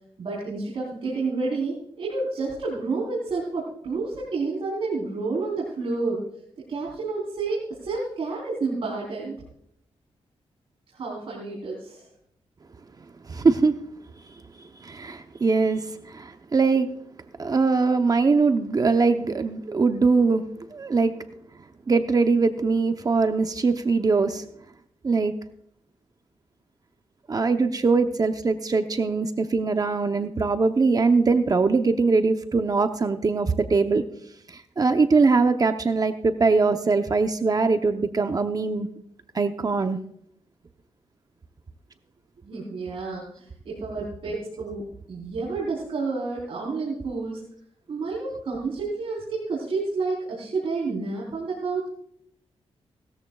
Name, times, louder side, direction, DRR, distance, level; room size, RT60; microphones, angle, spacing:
voice 1, 0.2-6.2 6.7-9.4 10.9-12.1 42.4-47.4 47.9-51.9, right 3 dB, 60° right, -5 dB, 4.0 m, -30 dB
voice 2, 13.3-13.8 14.8-16.9 17.4-20.4 20.7-21.1 21.9-24.5 25.0-25.3 27.3-34.0 34.5-38.9 39.3-40.0, right 4 dB, 35° right, 8 dB, 0.8 m, -22 dB
18.5 x 13.5 x 2.4 m, 0.69 s
wide cardioid pair, 105°, 11 cm